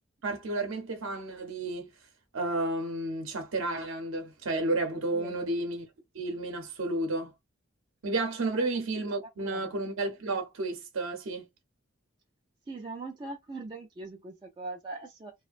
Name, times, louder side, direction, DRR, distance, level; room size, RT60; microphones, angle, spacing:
voice 1, 0.2-1.9 2.3-5.9 6.1-7.3 8.0-11.5, right 2 dB, 70° right, 0.6 m, -32 dB
voice 2, 9.4-9.8 12.7-15.3, right 3 dB, 20° right, 0.3 m, -41 dB
2.4 x 2.1 x 2.4 m
head